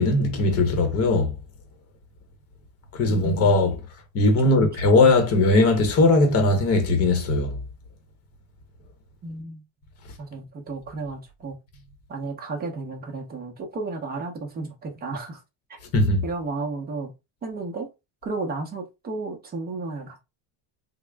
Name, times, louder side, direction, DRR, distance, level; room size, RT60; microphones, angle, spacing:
voice 1, 0.0-1.3 2.9-3.8 4.1-7.6 15.9-16.2, left 2 dB, 35° left, 0.9 m, -19 dB
voice 2, 4.4-4.9 9.2-9.6 10.2-11.6 12.1-15.4 15.7-15.8 16.2-17.1 17.4-17.9 18.2-20.2, right 3 dB, 20° right, 0.7 m, -33 dB
3.6 x 2.0 x 3.3 m
cardioid pair, 165°, 44 cm